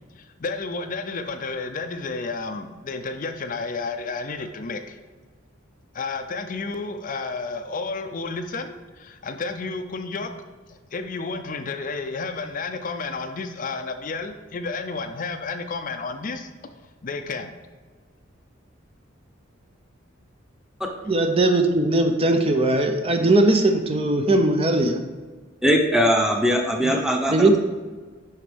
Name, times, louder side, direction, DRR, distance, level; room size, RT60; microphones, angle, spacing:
voice 1, 0.2-5.0 5.9-10.3 10.7-16.5 17.0-17.5, left 4 dB, 40° left, 7 dB, 0.4 m, -31 dB
voice 2, 21.1-25.0 26.8-26.9 27.3-27.6, right 2 dB, 30° right, 5 dB, 0.5 m, -19 dB
voice 3, 25.6-27.6, equal, ahead, 1 dB, 0.8 m, -20 dB
11.0 x 4.4 x 3.4 m, 1.4 s
head